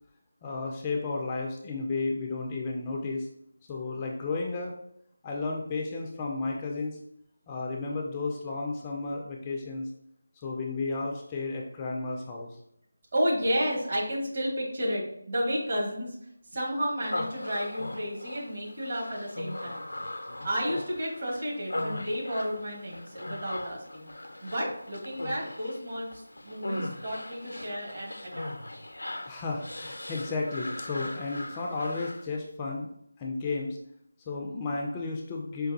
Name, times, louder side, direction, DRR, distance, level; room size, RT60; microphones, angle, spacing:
voice 1, 0.4-3.3 3.7-4.7 5.2-7.0 7.5-9.9 10.4-12.5 26.7-26.8 29.2-32.9 33.2-33.8 34.3-35.7, left 3 dB, 20° left, 0 dB, 0.3 m, -33 dB
voice 2, 13.1-16.2 16.4-19.9 20.4-24.1 24.4-28.5, equal, 45° right, -3 dB, 1.3 m, -32 dB
Human voice, 17.1-32.3, left 1 dB, 85° left, 0.4 m, -39 dB
4.6 x 2.2 x 2.6 m, 0.71 s
figure-of-eight pair, 165°, 0 cm